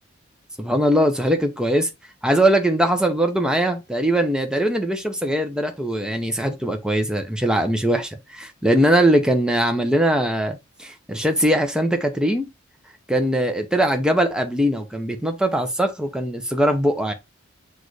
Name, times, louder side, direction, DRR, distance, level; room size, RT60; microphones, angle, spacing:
voice 1, 0.6-1.9 2.2-12.5 13.1-17.1, right 1 dB, 5° right, 0.6 m, -21 dB
6.2 x 2.5 x 3.2 m
head